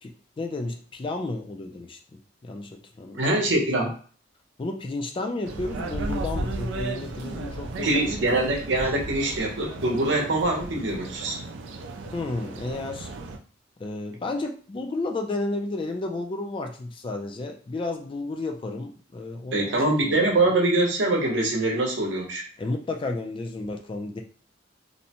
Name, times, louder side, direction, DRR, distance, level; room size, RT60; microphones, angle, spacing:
voice 1, 0.0-3.9 4.6-8.3 12.1-13.1 13.8-20.5 22.6-24.2, left 2 dB, 30° left, 3 dB, 0.3 m, -32 dB
voice 2, 3.1-3.9 7.8-11.4 19.5-22.4, right 2 dB, 70° right, 0 dB, 0.7 m, -24 dB
sound 1, 5.4-13.4, right 2 dB, 90° right, 0.4 m, -35 dB
2.6 x 2.1 x 2.8 m, 0.42 s
head